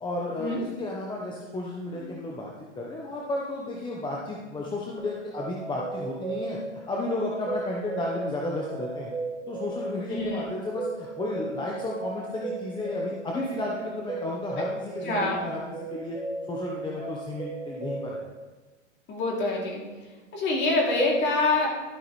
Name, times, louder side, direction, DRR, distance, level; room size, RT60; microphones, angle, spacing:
voice 1, 0.0-6.6 6.9-9.1 9.5-16.2 16.5-18.3, left 2 dB, 10° left, -3 dB, 0.9 m, -33 dB
sound 1, 5.0-18.2, right 3 dB, 15° right, 1.3 m, -36 dB
voice 2, 10.1-10.5 15.0-15.4 19.1-19.8 20.3-21.7, left 2 dB, 30° left, -2 dB, 2.7 m, -25 dB
12.5 x 6.2 x 3.1 m, 1.2 s
hypercardioid pair, 130°, 36 cm